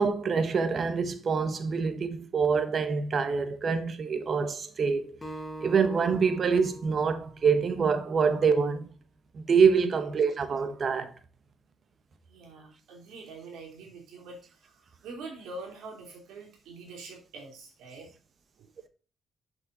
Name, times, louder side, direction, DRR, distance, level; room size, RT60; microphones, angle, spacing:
voice 1, 0.0-5.2 5.6-8.9 9.3-11.1, right 5 dB, 45° right, 1.1 m, -25 dB
Acoustic guitar, 5.2-8.5, right 1 dB, 15° left, 1.7 m, -44 dB
voice 2, 12.3-18.1 18.6-18.7, right 3 dB, 90° right, 3.1 m, -45 dB
7.2 x 5.5 x 4.0 m
cardioid pair, 90°, 0 cm